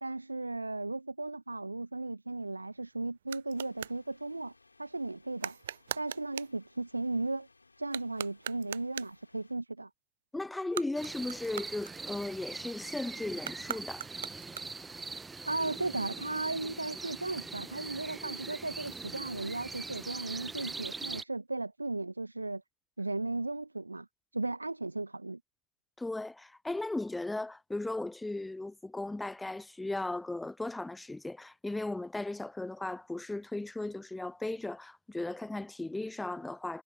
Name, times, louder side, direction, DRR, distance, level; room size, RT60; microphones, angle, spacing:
voice 1, 0.0-4.5 4.8-5.6 6.0-7.5 7.8-9.9 15.4-22.6 23.0-24.1 24.3-25.4, right 2 dB, 85° right, 1.5 m, -36 dB
sound 1, 2.3-4.0 5.4-6.6 7.8-9.3 10.6-12.4 13.4-15.0, right 10 dB, 60° right, 0.3 m, -42 dB
sound 2, 3.5-9.6, left 3 dB, 80° left, 6.2 m, -64 dB
voice 2, 10.3-14.0 26.0-36.8, left 2 dB, 5° left, 0.5 m, -36 dB
sound 3, 11.0-21.2, right 4 dB, 10° right, 1.2 m, -42 dB
figure-of-eight pair, 90°, 0 cm